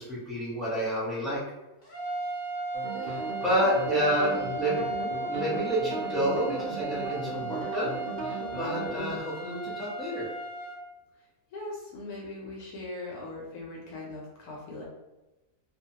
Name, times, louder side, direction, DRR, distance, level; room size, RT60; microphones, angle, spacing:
voice 1, 0.0-1.4 3.0-4.8 5.3-7.9 8.2-10.3, right 1 dB, ahead, -8 dB, 0.3 m, -29 dB
sound 1, 1.8-10.8, right 3 dB, 45° left, 0.6 m, -36 dB
sound 2, 2.7-9.2, right 1 dB, 65° right, 0.6 m, -37 dB
voice 2, 4.2-4.6 11.5-14.8, left 2 dB, 75° left, -3 dB, 1.1 m, -40 dB
2.6 x 2.1 x 2.7 m, 1.0 s
omnidirectional pair, 1.6 m